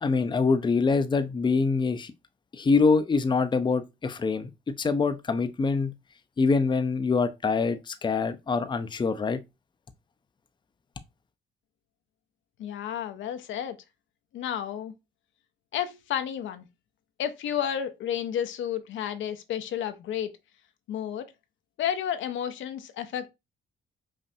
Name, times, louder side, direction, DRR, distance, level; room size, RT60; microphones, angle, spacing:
voice 1, 0.0-2.1 2.5-5.9 6.4-9.4, left 4 dB, 25° left, 0.5 m, -25 dB
voice 2, 12.6-13.8 14.3-14.9 15.7-16.7 17.2-20.3 20.9-21.3 21.8-23.3, left 9 dB, 75° left, 0.7 m, -31 dB
5.4 x 2.5 x 2.6 m
cardioid pair, 90°, 20 cm